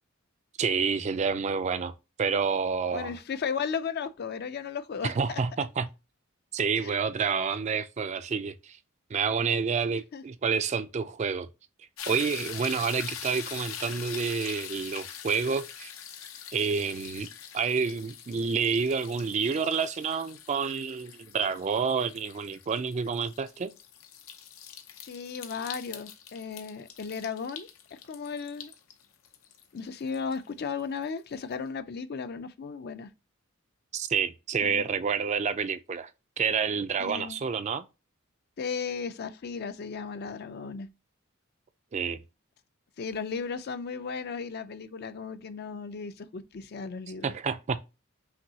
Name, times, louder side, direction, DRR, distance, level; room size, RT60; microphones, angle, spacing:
voice 1, 0.6-3.1 5.0-5.9 6.5-8.8 9.1-11.5 12.1-15.9 16.5-17.3 17.5-23.7 33.9-36.1 36.4-37.8 41.9-42.2 47.2-47.8, right 5 dB, 35° right, 0.3 m, -29 dB
voice 2, 2.9-5.4 6.8-6.9 10.1-10.2 25.1-28.7 29.7-33.1 34.6-34.8 37.0-37.4 38.6-40.9 43.0-47.3, left 5 dB, 50° left, 0.4 m, -35 dB
sound 1, 12.0-31.0 31.5-31.6, left 9 dB, 90° left, 0.7 m, -43 dB
5.8 x 2.7 x 2.7 m
head